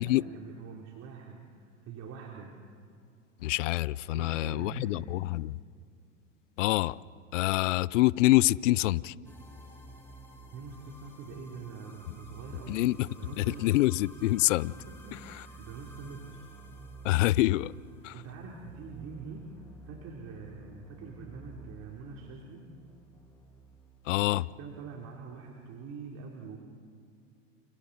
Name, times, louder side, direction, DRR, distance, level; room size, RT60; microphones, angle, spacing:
voice 1, 0.0-2.6 4.1-5.1 10.5-13.7 14.9-16.5 18.1-22.7 24.3-26.6, right 5 dB, 40° right, 3.5 m, -45 dB
voice 2, 3.4-5.6 6.6-7.0 7.3-9.1 12.7-13.1 13.4-14.7 17.0-17.7 18.0-18.1 24.0-24.5, left 17 dB, 70° left, 0.6 m, -26 dB
sound 1, 9.2-24.4, right 1 dB, 5° left, 6.5 m, -51 dB
30.0 x 29.5 x 4.2 m
hypercardioid pair, 95°, 39 cm